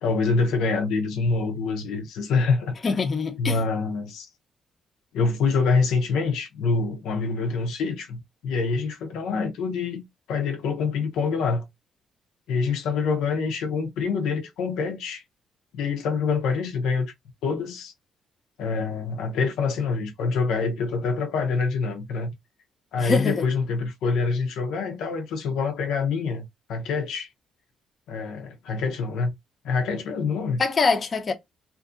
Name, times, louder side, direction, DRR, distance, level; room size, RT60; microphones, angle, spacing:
voice 1, 0.0-2.7 3.4-4.3 5.1-11.7 12.5-15.2 15.7-17.1 17.4-17.9 18.6-22.3 22.9-27.3 28.1-29.3 29.6-30.6, left 4 dB, 85° left, 0.5 m, -26 dB
voice 2, 2.8-3.6 23.0-23.5 30.6-31.3, left 4 dB, 40° left, 0.5 m, -24 dB
2.5 x 2.5 x 2.4 m
cardioid pair, 90°, 0 cm